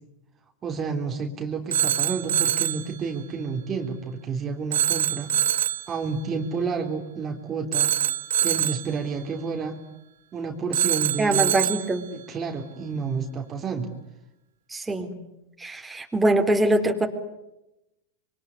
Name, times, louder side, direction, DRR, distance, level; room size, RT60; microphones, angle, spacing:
voice 1, 0.6-5.3 5.9-7.9 8.4-9.8 10.3-11.6 12.1-13.9, right 5 dB, 30° right, 3 dB, 3.4 m, -30 dB
Telephone, 1.7-2.9 4.7-5.9 7.7-8.9 10.7-11.9, right 11 dB, 80° right, 1.1 m, -24 dB
voice 2, 11.2-12.1 14.7-15.1 15.6-17.1, right 1 dB, 10° right, 3 dB, 3.9 m, -23 dB
26.5 x 23.0 x 9.9 m, 0.90 s
hypercardioid pair, 115°, 0 cm